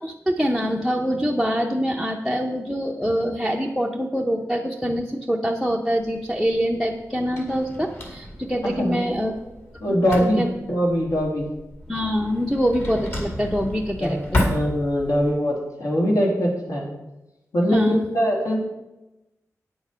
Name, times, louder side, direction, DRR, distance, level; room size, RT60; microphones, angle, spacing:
voice 1, 0.0-9.4 9.9-10.0 10.4-10.5 11.9-14.5 17.7-18.0, equal, ahead, -1 dB, 0.6 m, -24 dB
Drawer open or close, 5.9-15.3, left 1 dB, 40° left, 2.2 m, -32 dB
voice 2, 8.8-9.3 9.8-10.4 10.7-11.5 14.0-16.9 17.5-17.8 18.1-18.6, equal, 70° left, -1 dB, 2.7 m, -22 dB
9.0 x 7.0 x 5.6 m, 0.97 s
wide cardioid pair, 165°, 6 cm